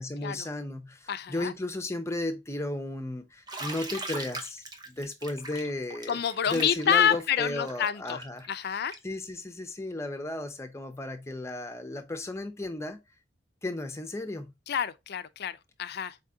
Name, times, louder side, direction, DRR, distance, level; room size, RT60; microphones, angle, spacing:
voice 1, 0.0-6.2 6.5-13.0 13.6-14.5, left 2 dB, 15° left, 0.6 m, -35 dB
voice 2, 1.1-1.5 6.1-8.2 8.5-9.0 14.7-16.2, left 9 dB, 55° left, 0.4 m, -28 dB
Bathtub (filling or washing), 3.5-9.1, right 2 dB, 20° right, 0.7 m, -40 dB
4.2 x 3.7 x 2.7 m
head